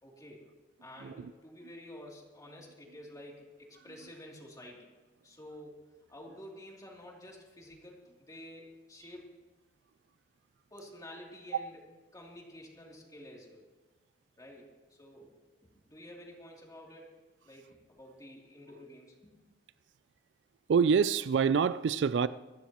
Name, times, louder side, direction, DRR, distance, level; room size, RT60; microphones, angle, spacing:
voice 1, 0.0-0.4 0.8-4.9 5.2-5.8 6.1-9.3 10.7-11.8 12.1-13.6 14.4-14.7 15.0-15.3 15.6-19.3, left 1 dB, 20° left, 3.0 m, -50 dB
voice 2, 1.0-1.3 11.5-11.7 20.7-22.3, right 6 dB, 80° right, 0.4 m, -26 dB
26.0 x 14.0 x 3.0 m
head